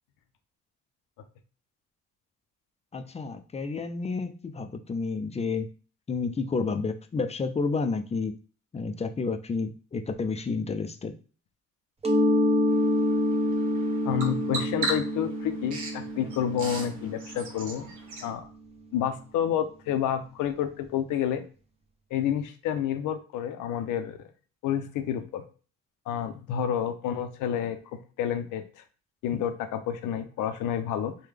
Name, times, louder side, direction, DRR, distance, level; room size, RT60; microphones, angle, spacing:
voice 1, 2.9-5.7 6.1-8.3 8.7-11.1 29.3-29.4, left 4 dB, 20° left, 7 dB, 0.4 m, -30 dB
Mallet percussion, 12.0-17.6, left 1 dB, 20° right, 0.8 m, -27 dB
Bird vocalization bird call bird song, 12.7-18.3, right 2 dB, 75° right, 1.0 m, -38 dB
voice 2, 14.0-17.9 18.2-18.5 18.9-21.4 22.1-24.2 24.6-25.4 26.1-28.8 29.2-31.1, left 9 dB, 85° left, 8 dB, 0.6 m, -29 dB
3.5 x 2.2 x 3.3 m, 0.38 s
cardioid pair, 90°, 30 cm